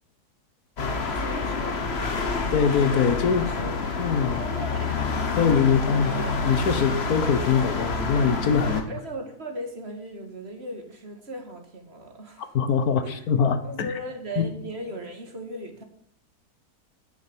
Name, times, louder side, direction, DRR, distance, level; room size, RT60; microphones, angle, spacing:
sound 1, 0.8-8.8, left 3 dB, 45° left, 1.5 m, -28 dB
voice 1, 1.0-2.3 3.4-4.0 4.3-5.2 5.9-6.2 8.6-12.6 13.0-13.2 13.6-15.8, right 1 dB, 40° right, 2.0 m, -38 dB
voice 2, 2.5-3.5 4.0-4.4 5.4-6.1 6.4-8.8 12.5-13.9 14.4-14.5, left 6 dB, 75° left, 1.5 m, -22 dB
9.3 x 6.9 x 8.6 m
omnidirectional pair, 1.6 m